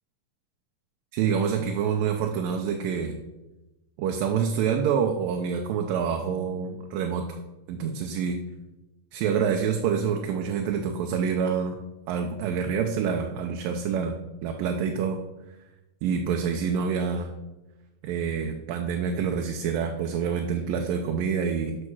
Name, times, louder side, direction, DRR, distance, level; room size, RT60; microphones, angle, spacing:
voice 1, 1.1-3.1 4.0-7.2 7.7-8.4 9.1-11.8 12.1-14.2 14.4-15.2 16.0-17.3 18.0-21.9, right 7 dB, 80° right, 3 dB, 2.5 m, -27 dB
11.5 x 6.7 x 6.1 m, 1.0 s
omnidirectional pair, 4.0 m